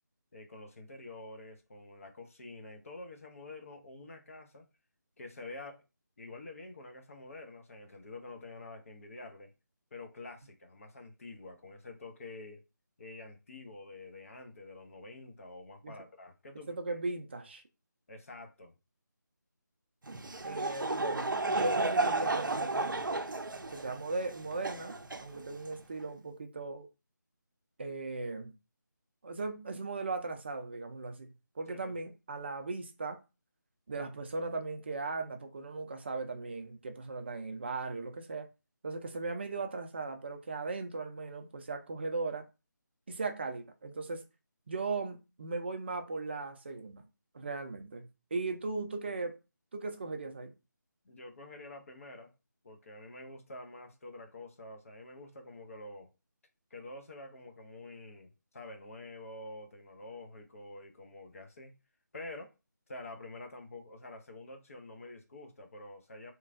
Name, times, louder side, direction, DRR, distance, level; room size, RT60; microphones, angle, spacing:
voice 1, 0.3-4.6 5.2-5.8 6.2-9.5 9.9-12.6 13.0-16.7 18.1-18.7 31.7-31.9 51.0-52.3 52.6-56.1 56.7-61.7 62.1-62.5 62.9-66.3, left 2 dB, 45° left, 0.6 m, -48 dB
voice 2, 16.7-17.6 20.4-23.0 23.7-26.9 27.8-28.5 29.2-31.3 31.6-33.2 33.9-38.5 38.8-42.4 43.1-44.2 44.7-47.0 47.3-49.3 49.7-50.5, right 3 dB, 35° right, 0.5 m, -38 dB
Laughter / Crowd, 20.0-25.8, right 2 dB, 85° right, 0.5 m, -33 dB
3.0 x 2.3 x 2.5 m
figure-of-eight pair, 160°, 11 cm